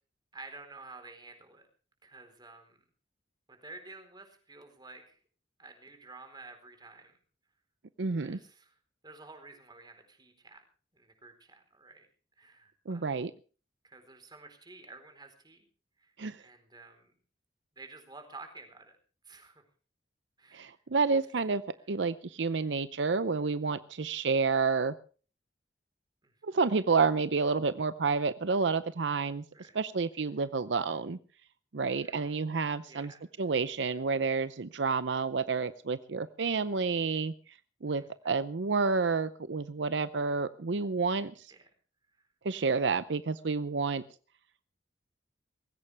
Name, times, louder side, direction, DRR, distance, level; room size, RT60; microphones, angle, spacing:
voice 1, 0.3-1.7 2.0-2.8 3.5-5.2 5.6-7.1 8.2-8.8 9.0-10.6 10.9-12.1 12.4-13.1 13.8-15.7 16.0-16.1 16.4-17.1 17.8-18.9 19.2-19.6 20.4-20.8 21.1-21.2 26.2-26.6 29.5-29.8 31.8-32.4 32.9-33.2 37.9-38.3 41.5-41.7, right 3 dB, 25° right, 6 dB, 4.1 m, -51 dB
voice 2, 8.0-8.4 12.9-13.3 16.2-16.4 20.5-21.6 21.9-24.9 26.4-29.4 29.7-31.2 31.7-33.1 33.4-37.3 37.8-41.5 42.4-44.0, right 4 dB, 75° right, 13 dB, 0.7 m, -29 dB
20.0 x 16.5 x 3.4 m, 0.39 s
head